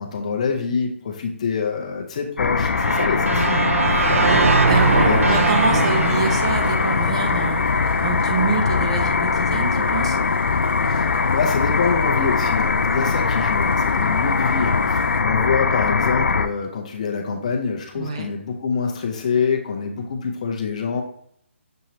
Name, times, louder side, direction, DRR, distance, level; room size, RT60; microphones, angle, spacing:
voice 1, 0.0-4.1 5.0-5.3 10.9-21.0, left 5 dB, 30° left, 2 dB, 0.6 m, -26 dB
sound 1, 2.4-16.5, left 4 dB, 90° left, 0.4 m, -21 dB
sound 2, 2.8-7.8, right 4 dB, 85° right, 0.5 m, -22 dB
voice 2, 4.7-10.2 18.0-18.3, right 4 dB, 25° right, 4 dB, 0.4 m, -26 dB
sound 3, 4.7-15.2, right 1 dB, 60° right, 1.4 m, -33 dB
6.3 x 2.9 x 2.8 m, 0.68 s
hypercardioid pair, 170°, 7 cm